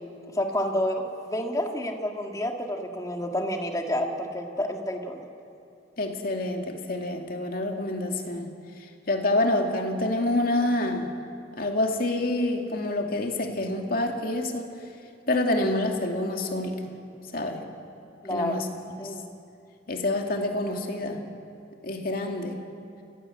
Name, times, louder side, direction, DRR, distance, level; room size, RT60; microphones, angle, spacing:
voice 1, 0.3-5.2 18.2-18.6 19.0-19.2, left 1 dB, 20° left, 3 dB, 2.1 m, -29 dB
voice 2, 6.0-8.5 9.1-11.1 11.6-14.7 15.3-16.8 17.3-17.6 18.3-18.7 19.0-19.1 19.9-21.2 21.8-22.6, left 2 dB, 55° left, 3 dB, 2.4 m, -27 dB
29.5 x 16.5 x 7.9 m, 2.5 s
head